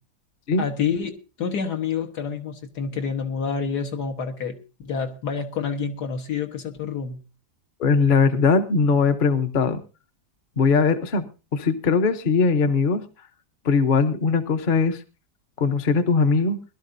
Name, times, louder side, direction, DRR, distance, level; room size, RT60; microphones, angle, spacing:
voice 1, 0.6-4.6 4.8-7.2, left 6 dB, 75° left, 1.8 m, -28 dB
voice 2, 7.8-9.8 10.6-13.1 13.6-15.0 15.6-16.6, left 4 dB, 40° left, 0.8 m, -20 dB
21.5 x 12.0 x 2.6 m
omnidirectional pair, 1.8 m